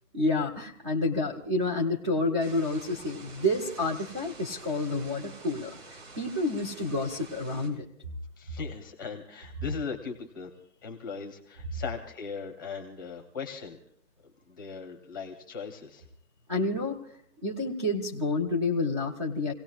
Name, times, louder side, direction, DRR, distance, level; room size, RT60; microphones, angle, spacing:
voice 1, 0.1-7.8 16.5-17.0 17.4-19.5, left 2 dB, 20° right, 1 dB, 0.8 m, -29 dB
sound 1, 2.4-7.7, right 3 dB, 40° right, 4.0 m, -48 dB
voice 2, 8.4-10.5 10.8-13.8 14.5-16.0, left 5 dB, 15° left, 3 dB, 0.9 m, -39 dB
28.5 x 17.5 x 2.4 m, 0.69 s
hypercardioid pair, 165°, 49 cm